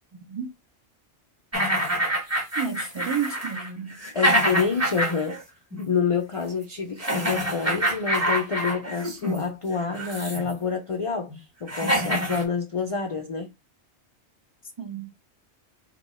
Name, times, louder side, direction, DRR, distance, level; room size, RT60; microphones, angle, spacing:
voice 1, 0.1-0.5 2.6-4.0 14.8-15.1, right 7 dB, 45° right, 0.3 m, -31 dB
sound 1, 1.5-5.4 5.7-5.9 7.0-9.4 9.9-10.5 11.3-11.4 11.7-12.4, equal, 15° right, 0.7 m, -26 dB
voice 2, 4.1-5.4 5.9-13.5, left 5 dB, 60° left, 0.3 m, -28 dB
2.7 x 2.3 x 4.1 m
omnidirectional pair, 1.2 m